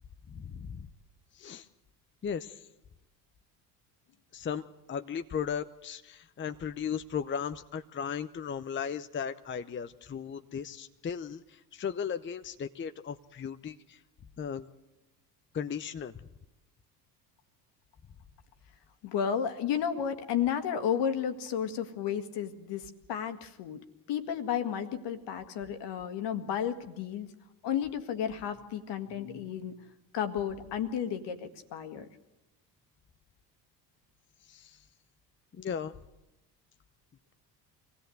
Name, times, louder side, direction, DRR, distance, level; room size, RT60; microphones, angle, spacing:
voice 1, 0.3-0.9 1.3-1.7 2.2-2.7 4.3-4.6 4.9-14.0 14.4-14.7 15.5-16.1 34.4-34.8 35.5-35.9, left 7 dB, 25° left, 10 dB, 0.8 m, -36 dB
voice 2, 19.0-27.3 27.6-29.7 30.1-32.1, left 8 dB, 55° left, 8 dB, 1.9 m, -32 dB
24.5 x 17.0 x 7.9 m, 0.97 s
hypercardioid pair, 60°, 49 cm